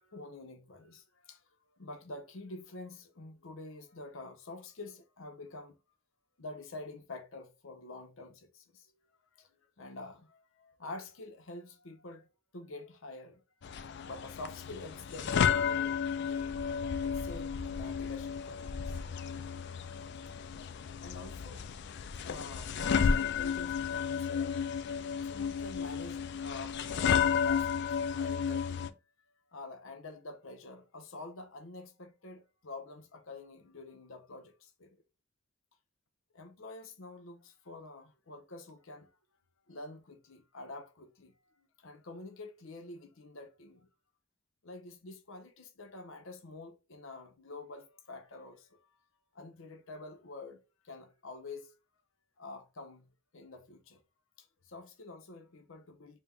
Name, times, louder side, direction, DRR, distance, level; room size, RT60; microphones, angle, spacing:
voice 1, 0.0-1.5 1.8-5.8 6.4-8.9 9.4-12.3 12.5-13.4 14.0-19.0 21.0-21.7 22.2-24.6 25.2-29.0 29.5-35.0 36.3-39.2 39.7-43.9 44.6-49.0 49.3-51.7 52.4-53.1 53.3-54.0 54.4-56.2, left 2 dB, 70° left, 0.8 m, -48 dB
sound 1, 13.6-28.9, left 7 dB, 55° left, 0.4 m, -32 dB
4.2 x 2.2 x 3.5 m
head